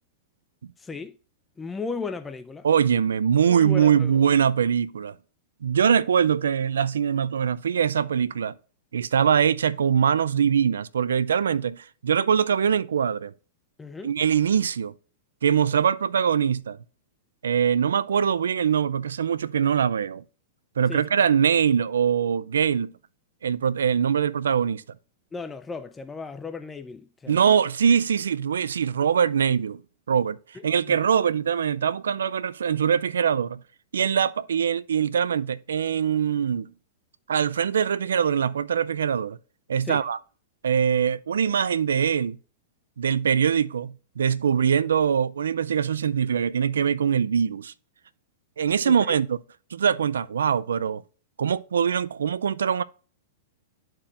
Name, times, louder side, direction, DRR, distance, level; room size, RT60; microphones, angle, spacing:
voice 1, 0.8-1.2 1.6-2.7 3.4-4.2 13.8-14.1 20.9-21.0 25.3-27.5 30.5-31.0 39.8-40.0 48.8-49.2, left 4 dB, 15° left, 0.4 m, -36 dB
voice 2, 2.6-5.1 5.6-8.6 8.9-13.3 14.0-14.9 15.4-16.8 17.4-20.2 20.8-22.9 23.4-24.8 27.3-29.8 30.1-30.4 30.6-33.6 33.9-36.7 37.3-39.4 39.7-40.2 40.6-42.4 43.0-47.7 48.6-49.4 49.7-51.0 51.4-52.8, right 7 dB, 85° right, 0.3 m, -23 dB
11.5 x 4.4 x 2.5 m
hypercardioid pair, 120°, 0 cm